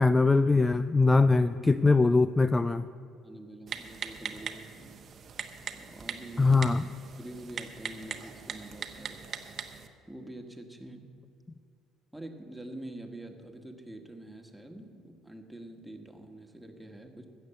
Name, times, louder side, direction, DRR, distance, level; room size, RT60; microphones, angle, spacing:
voice 1, 0.0-2.8 6.4-6.8, left 3 dB, 20° left, 14 dB, 0.4 m, -22 dB
voice 2, 3.2-5.0 5.7-6.6 7.2-9.3 10.1-11.1 12.1-17.3, right 1 dB, 5° right, 4 dB, 1.7 m, -45 dB
Typing, 3.7-9.9, right 6 dB, 45° right, 1.0 m, -41 dB
15.5 x 6.7 x 7.6 m, 2.4 s
figure-of-eight pair, 55°, 0 cm